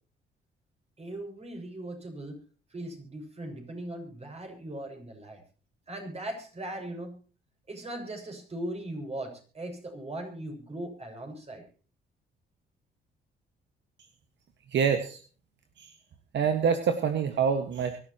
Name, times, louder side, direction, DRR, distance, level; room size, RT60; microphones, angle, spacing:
voice 1, 1.0-2.4 2.7-5.4 5.9-7.2 7.7-11.7, right 1 dB, 30° right, 4 dB, 6.6 m, -39 dB
voice 2, 14.7-15.2 15.8-15.9 16.3-18.0, right 7 dB, 65° right, 8 dB, 1.6 m, -26 dB
24.0 x 12.5 x 3.0 m, 0.38 s
cardioid pair, 90°, 20 cm